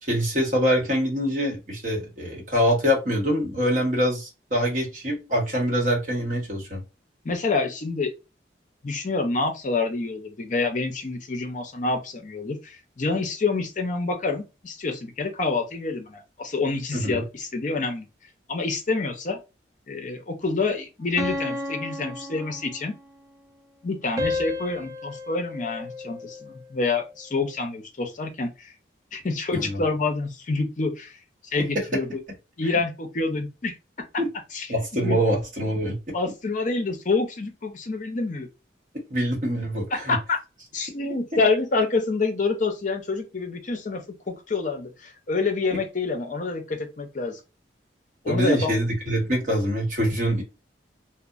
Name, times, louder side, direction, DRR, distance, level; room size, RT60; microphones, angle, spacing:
voice 1, 0.0-6.8 16.9-17.2 29.5-29.8 34.2-34.3 34.7-36.0 39.1-40.2 48.3-50.4, equal, 45° right, 1.0 m, -24 dB
voice 2, 7.2-8.1 8.8-18.1 18.5-19.4 19.9-22.9 23.8-28.7 29.1-31.1 31.5-32.1 32.6-33.7 34.5-34.7 35.0-35.2 36.1-38.5 39.9-40.4 40.7-47.4 48.2-48.7, left 3 dB, 45° left, 0.6 m, -27 dB
sound 1, 21.2-23.1 24.2-26.6, left 2 dB, 20° right, 0.4 m, -32 dB
2.7 x 2.0 x 2.4 m
head